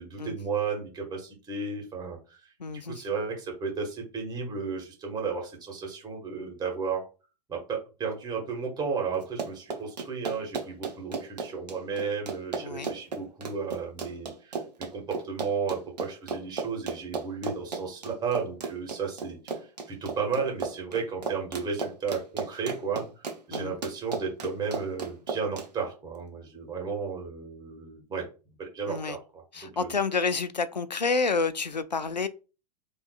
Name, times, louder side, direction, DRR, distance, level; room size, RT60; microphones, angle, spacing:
voice 1, 0.0-2.4 2.8-7.0 7.5-19.6 19.9-28.3 28.6-30.0, right 5 dB, 20° right, 1.6 m, -33 dB
voice 2, 2.6-3.0 12.6-12.9 23.5-23.8 28.9-29.2 29.5-32.3, left 4 dB, 90° left, 0.4 m, -29 dB
Run, 9.2-25.7, right 4 dB, 75° right, 0.9 m, -35 dB
4.7 x 3.1 x 2.4 m
figure-of-eight pair, 95°, 21 cm